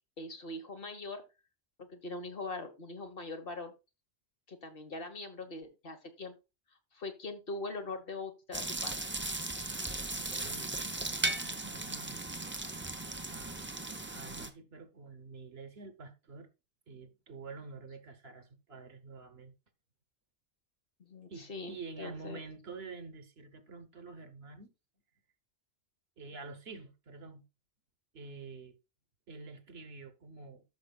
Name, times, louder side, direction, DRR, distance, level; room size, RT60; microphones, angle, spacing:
voice 1, 0.2-1.2 1.8-3.7 4.5-6.3 6.9-9.0 21.0-22.4, left 2 dB, 55° left, 1.4 m, -42 dB
sound 1, 8.5-14.5, right 2 dB, 15° right, 0.5 m, -37 dB
voice 2, 10.2-10.8 11.1-12.2 13.3-13.7 14.1-16.5 16.9-19.5 21.3-24.7 26.2-27.4 28.1-28.7 29.3-30.6, right 4 dB, 65° right, 1.3 m, -48 dB
13.0 x 6.3 x 2.3 m
omnidirectional pair, 1.2 m